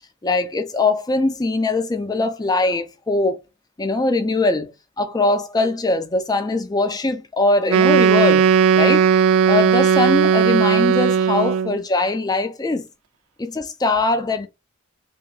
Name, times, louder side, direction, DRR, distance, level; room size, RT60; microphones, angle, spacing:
voice 1, 0.2-3.4 3.8-8.5 8.7-12.9 13.4-14.5, left 2 dB, 20° left, 0.4 m, -21 dB
Wind instrument woodwind instrument, 7.7-11.8, right 7 dB, 70° right, 0.3 m, -16 dB
3.0 x 2.9 x 3.6 m
head